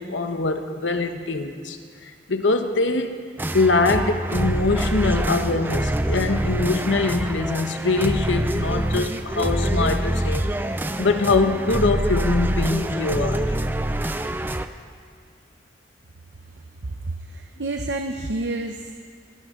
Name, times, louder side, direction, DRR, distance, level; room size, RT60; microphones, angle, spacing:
voice 1, 0.0-3.2 3.5-10.5 11.0-13.6, left 3 dB, 85° left, 7 dB, 1.1 m, -23 dB
sound 1, 3.4-14.7, right 1 dB, 10° right, 0.4 m, -25 dB
voice 2, 17.3-18.9, right 2 dB, 70° right, 4 dB, 0.8 m, -29 dB
23.0 x 16.0 x 3.8 m, 2.1 s
head